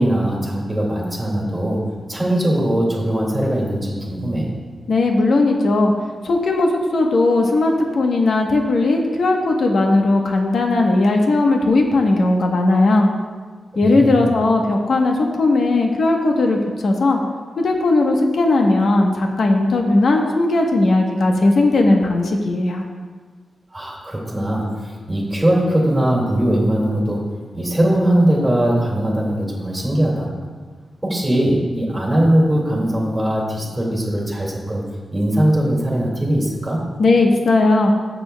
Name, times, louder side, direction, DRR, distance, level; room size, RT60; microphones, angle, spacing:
voice 1, 0.0-1.8 2.1-4.4 13.8-14.1 23.7-27.2 27.5-30.3 31.0-34.8 35.1-36.8, right 1 dB, 10° right, -3 dB, 2.2 m, -20 dB
voice 2, 4.9-5.9 6.2-13.1 13.8-17.2 17.6-22.8 37.0-37.9, left 2 dB, 70° left, 1 dB, 1.0 m, -17 dB
14.5 x 6.9 x 2.3 m, 1.5 s
wide cardioid pair, 135°, 0 cm